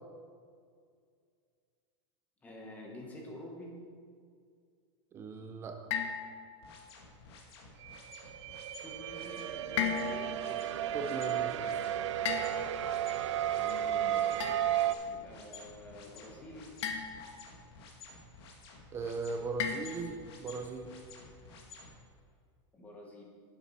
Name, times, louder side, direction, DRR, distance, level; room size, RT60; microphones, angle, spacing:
voice 1, 2.4-3.8 8.8-10.6 13.5-14.3 15.0-16.7 22.7-23.2, left 1 dB, 10° left, -1 dB, 1.2 m, -48 dB
voice 2, 5.1-5.8 10.9-11.8 18.9-20.9, right 4 dB, 15° right, 5 dB, 0.5 m, -38 dB
sound 1, 5.9-6.8 9.8-10.5 12.3-13.0 14.4-14.9 16.8-17.5 19.6-20.3, left 7 dB, 75° left, 1.0 m, -36 dB
sound 2, 6.6-21.9, left 4 dB, 60° left, 1.7 m, -53 dB
sound 3, 7.8-14.9, right 11 dB, 90° right, 0.4 m, -33 dB
10.5 x 7.3 x 4.1 m, 2.1 s
supercardioid pair, 175°, 15 cm